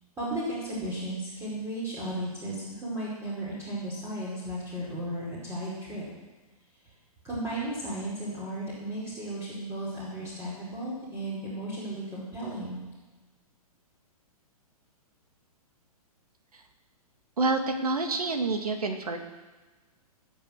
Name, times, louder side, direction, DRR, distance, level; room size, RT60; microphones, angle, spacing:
voice 1, 0.2-6.0 7.2-12.8, right 1 dB, 15° right, -8 dB, 4.9 m, -35 dB
voice 2, 17.4-19.2, right 3 dB, 70° right, 5 dB, 2.1 m, -27 dB
19.5 x 7.6 x 6.6 m, 1.2 s
figure-of-eight pair, 115°, 19 cm